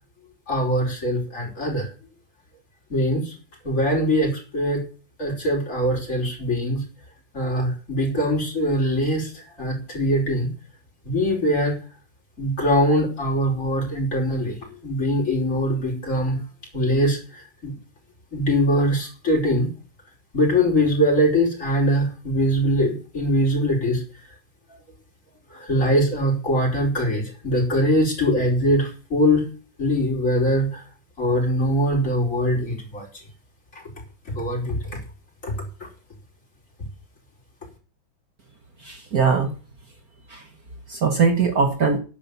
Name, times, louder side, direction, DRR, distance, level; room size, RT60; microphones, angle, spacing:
voice 1, 0.5-1.9 2.9-3.3 3.6-4.8 5.2-6.8 7.3-10.5 11.0-11.7 12.4-16.4 16.7-17.7 18.3-19.7 20.3-24.0 25.5-29.5 29.8-30.8 31.2-33.1 34.3-34.8 35.4-35.5, equal, 40° left, 5.4 m, -22 dB
voice 2, 38.8-39.5 40.3-40.4 40.9-42.0, right 5 dB, 50° right, 1.9 m, -21 dB
11.0 x 10.5 x 7.0 m
omnidirectional pair, 2.0 m